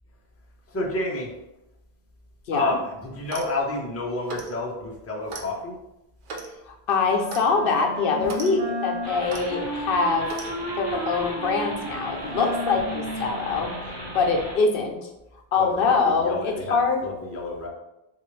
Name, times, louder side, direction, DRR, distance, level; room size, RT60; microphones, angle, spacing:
voice 1, 0.7-1.3 2.5-5.8 12.2-12.4 15.6-17.7, left 2 dB, 15° left, -3 dB, 0.5 m, -30 dB
Clock, 3.2-3.6 4.3-4.6 5.3-5.5 6.3-6.5 7.3-7.5 8.2-8.5 9.3-9.5 10.3-10.5, right 3 dB, 60° right, 0.7 m, -36 dB
voice 2, 6.7-10.3 10.8-13.7 14.1-15.0 15.5-17.0, left 4 dB, 65° left, 2 dB, 0.8 m, -24 dB
Wind instrument woodwind instrument, 7.2-14.7, right 1 dB, 85° right, 1.0 m, -34 dB
sound 1, 9.0-14.5, equal, 25° right, 1.1 m, -38 dB
3.9 x 2.5 x 3.1 m, 0.91 s
omnidirectional pair, 1.1 m